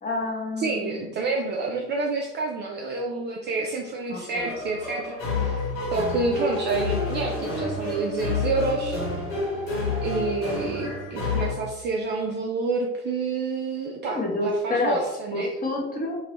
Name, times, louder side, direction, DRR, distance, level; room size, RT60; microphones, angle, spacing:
voice 1, 0.0-1.1 4.1-4.5 14.0-15.0 15.3-16.2, left 2 dB, 20° left, -1 dB, 0.9 m, -28 dB
voice 2, 0.6-5.6 5.9-9.0 10.0-15.5, right 3 dB, 30° right, 0 dB, 0.3 m, -28 dB
sound 1, 4.3-11.5, left 3 dB, 75° left, 1.4 m, -29 dB
2.8 x 2.6 x 3.0 m, 1.0 s
hypercardioid pair, 70°, 40 cm